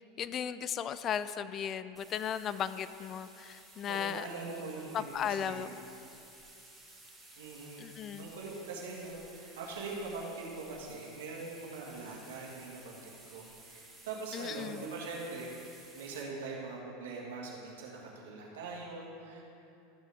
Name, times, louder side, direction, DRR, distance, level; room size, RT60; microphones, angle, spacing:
voice 1, 0.2-4.3 4.9-5.7 7.8-8.3 14.3-14.8, left 8 dB, 40° left, 14 dB, 0.3 m, -36 dB
sound 1, 2.0-16.2, right 2 dB, 5° right, 2.0 m, -55 dB
voice 2, 3.7-5.7 7.4-7.9 8.2-19.5, right 3 dB, 75° right, -2 dB, 1.8 m, -42 dB
13.0 x 6.3 x 3.5 m, 2.8 s
hypercardioid pair, 90°, 0 cm